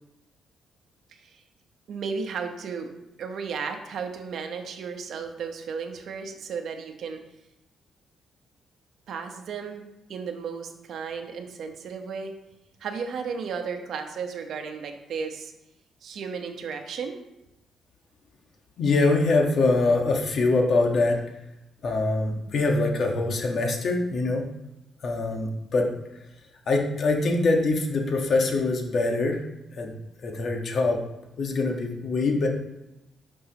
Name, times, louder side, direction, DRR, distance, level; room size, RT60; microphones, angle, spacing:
voice 1, 1.1-1.4 1.9-2.9 3.2-7.2 9.1-9.8 10.1-12.3 12.8-15.5 16.0-17.2, right 5 dB, 70° right, 5 dB, 1.0 m, -34 dB
voice 2, 18.8-21.2 21.8-24.5 25.0-26.2 26.7-29.4 29.7-31.0 31.4-32.5, left 3 dB, 55° left, 2 dB, 1.4 m, -24 dB
11.5 x 5.4 x 2.9 m, 0.94 s
cardioid pair, 105°, 0 cm